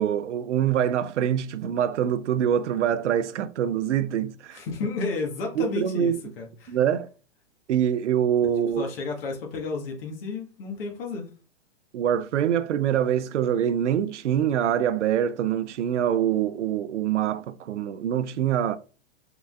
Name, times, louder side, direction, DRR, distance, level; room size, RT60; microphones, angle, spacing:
voice 1, 0.0-4.6 5.6-6.2 6.7-7.1 7.7-8.9 11.9-18.8, right 9 dB, 90° right, 0.6 m, -24 dB
voice 2, 4.5-6.8 8.7-11.3, left 4 dB, 55° left, 1.5 m, -32 dB
5.6 x 3.8 x 2.4 m
hypercardioid pair, 150°, 34 cm